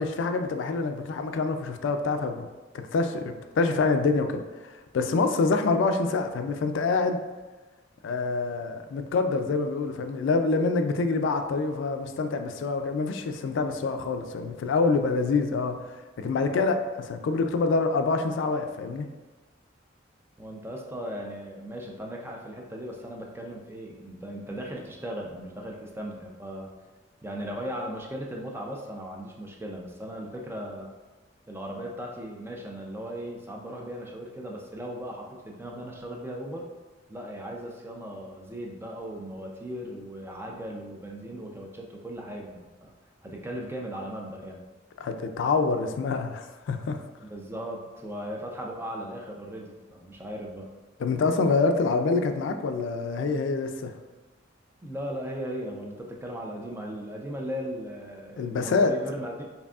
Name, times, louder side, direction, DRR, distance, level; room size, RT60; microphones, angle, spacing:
voice 1, 0.0-2.5 2.7-7.2 8.0-15.8 16.2-19.1 45.0-47.0 51.0-53.9 58.4-58.9, left 4 dB, 75° left, 7 dB, 0.3 m, -26 dB
voice 2, 20.4-26.7 27.2-30.9 31.5-36.6 37.1-42.9 43.2-44.7 47.3-50.7 54.8-59.5, equal, 10° right, 0 dB, 0.4 m, -37 dB
4.8 x 2.6 x 2.4 m, 1.2 s
head